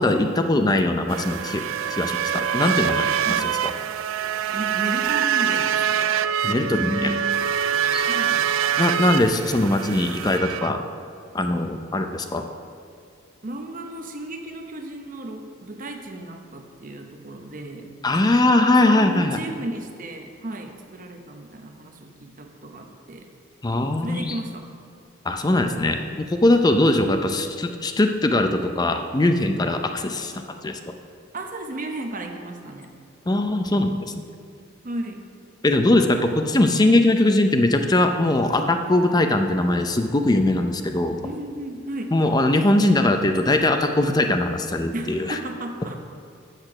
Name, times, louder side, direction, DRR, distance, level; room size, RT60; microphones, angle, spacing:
voice 1, 0.0-1.6 1.9-3.1 6.4-7.2 7.8-8.1 8.8-10.8 11.3-12.4 18.0-19.4 23.6-24.3 25.3-30.9 33.3-34.1 35.6-41.2 42.1-45.4, left 1 dB, 20° left, 6 dB, 0.5 m, -21 dB
sound 1, 1.1-10.7, right 8 dB, 75° right, 0.3 m, -24 dB
voice 2, 4.5-6.1 8.1-8.5 13.4-17.9 18.7-23.3 24.0-24.7 31.3-32.9 34.8-35.3 41.2-42.2 44.9-45.9, right 1 dB, 40° right, 4 dB, 0.8 m, -34 dB
8.0 x 6.7 x 5.9 m, 2.3 s
head